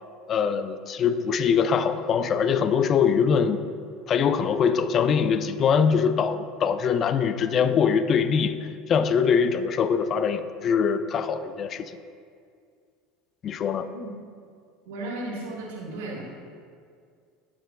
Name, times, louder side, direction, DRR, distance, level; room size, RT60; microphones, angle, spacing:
voice 1, 0.3-3.6 4.1-12.0 13.4-13.9, left 6 dB, 45° left, 12 dB, 0.4 m, -23 dB
voice 2, 14.9-16.3, right 2 dB, 75° right, -4 dB, 1.9 m, -34 dB
11.5 x 7.2 x 2.4 m, 2.2 s
hypercardioid pair, 80°, 0 cm